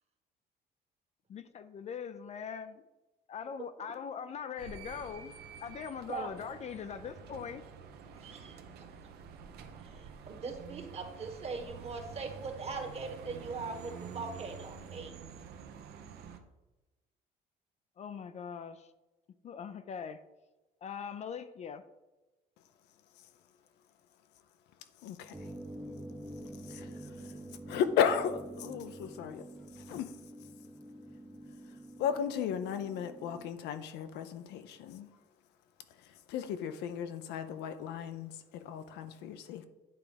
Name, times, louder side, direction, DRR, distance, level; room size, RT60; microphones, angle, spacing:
voice 1, 1.3-2.8 3.3-5.3 5.6-7.6 18.0-18.9 19.4-20.2 20.8-21.8, left 7 dB, 40° left, 11 dB, 0.4 m, -41 dB
sound 1, 4.6-16.4, right 6 dB, 70° right, 0.8 m, -48 dB
voice 2, 8.1-8.9 9.8-15.1, right 4 dB, 40° right, 5 dB, 1.3 m, -41 dB
voice 3, 25.0-25.4 26.7-27.3 27.7-29.4 29.8-30.1 32.0-35.1 36.3-39.7, left 8 dB, 85° left, 10 dB, 0.6 m, -35 dB
sound 2, 25.3-33.5, right 1 dB, 10° right, 0.6 m, -47 dB
9.3 x 3.5 x 5.1 m, 1.1 s
cardioid pair, 110°, 17 cm